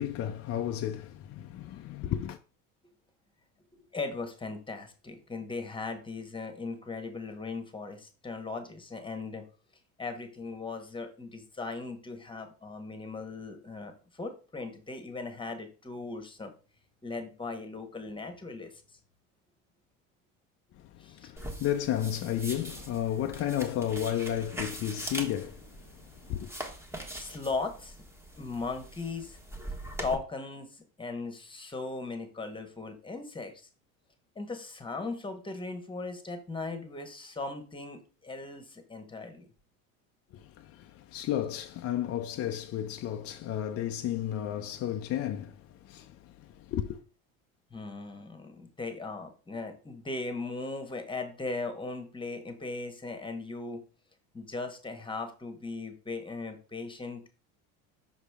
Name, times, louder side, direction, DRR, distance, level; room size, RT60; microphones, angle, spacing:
voice 1, 0.0-2.4 20.7-26.5 40.3-47.0, left 11 dB, 35° left, 0.5 m, -33 dB
voice 2, 3.7-9.4 10.0-16.5 17.0-18.8 21.0-21.3 27.1-28.0 28.4-29.4 30.0-33.7 34.3-39.5 47.7-53.8 54.3-57.3, left 3 dB, 10° left, 1.2 m, -38 dB
sound 1, 21.4-30.1, right 1 dB, 5° right, 1.2 m, -42 dB
5.6 x 5.0 x 3.4 m
supercardioid pair, 110°, 41 cm